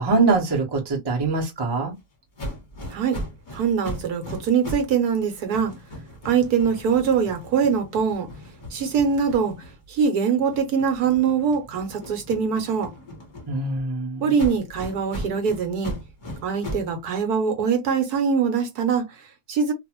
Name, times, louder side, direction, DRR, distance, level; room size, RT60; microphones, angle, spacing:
voice 1, 0.0-2.0 13.5-14.3, right 3 dB, 25° right, 0.5 m, -23 dB
sound 1, 2.4-5.0 5.3-10.0 10.5-13.8 14.3-16.9, equal, 30° left, 1.1 m, -38 dB
voice 2, 3.5-5.7 6.2-8.3 8.7-9.5 9.9-12.9 14.2-15.9 16.4-19.7, right 6 dB, 65° right, 1.1 m, -23 dB
2.6 x 2.5 x 2.8 m
omnidirectional pair, 1.9 m